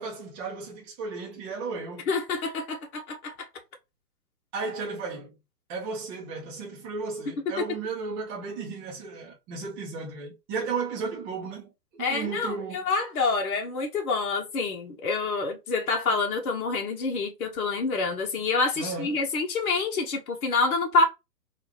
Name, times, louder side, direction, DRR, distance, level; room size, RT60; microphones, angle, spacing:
voice 1, 0.0-2.1 4.5-5.4 5.7-12.9 18.8-19.2, right 4 dB, 15° right, 0.7 m, -34 dB
voice 2, 2.1-3.3 7.6-7.7 12.0-21.0, left 3 dB, 60° left, 1.1 m, -27 dB
3.6 x 2.5 x 2.9 m
hypercardioid pair, 130°, 49 cm